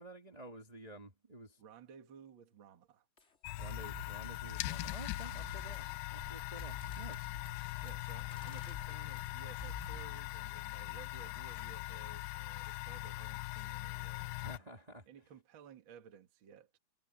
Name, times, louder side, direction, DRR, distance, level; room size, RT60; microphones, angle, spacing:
voice 1, 0.0-1.6 3.6-7.3 14.4-15.1, right 1 dB, 60° right, 0.4 m, -51 dB
voice 2, 1.6-3.1 7.8-16.8, right 7 dB, 40° right, 1.8 m, -57 dB
sound 1, 3.2-3.3 3.6-10.0, left 2 dB, 20° left, 2.0 m, -49 dB
sound 2, 3.4-14.6, left 19 dB, 80° left, 2.5 m, -41 dB
omnidirectional pair, 4.7 m